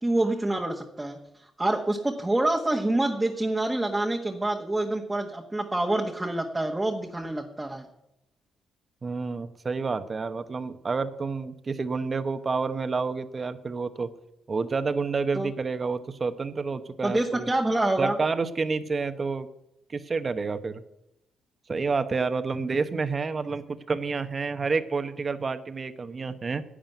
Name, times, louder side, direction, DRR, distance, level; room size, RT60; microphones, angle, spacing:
voice 1, 0.0-1.2 1.6-7.9 15.3-15.5 17.0-18.1, right 2 dB, 10° right, 1 dB, 1.4 m, -26 dB
voice 2, 9.0-14.1 14.5-17.5 18.0-19.5 19.9-20.8 21.7-26.6, right 4 dB, 35° right, 11 dB, 1.1 m, -29 dB
11.0 x 8.7 x 9.2 m, 0.87 s
cardioid pair, 90°, 0 cm